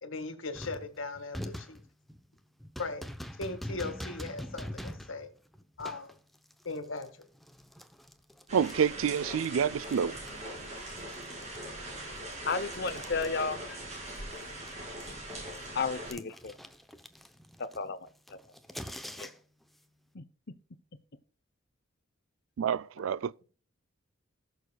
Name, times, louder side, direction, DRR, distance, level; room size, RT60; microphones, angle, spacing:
voice 1, 0.0-1.8 2.8-3.0 3.4-5.3 5.8-6.1 6.6-7.1, left 3 dB, 75° left, 1.8 m, -38 dB
sound 1, 0.5-9.5 9.8-13.8 14.1-19.6, equal, ahead, 0.7 m, -45 dB
sound 2, 8.5-16.1, right 1 dB, 35° right, 4.9 m, -41 dB
voice 2, 8.5-10.2 22.6-23.4, right 7 dB, 85° right, 0.4 m, -28 dB
voice 3, 12.5-14.0 15.7-16.6 17.6-18.4 19.2-19.3 20.1-20.3, left 4 dB, 55° left, 0.8 m, -34 dB
19.0 x 6.7 x 2.3 m
head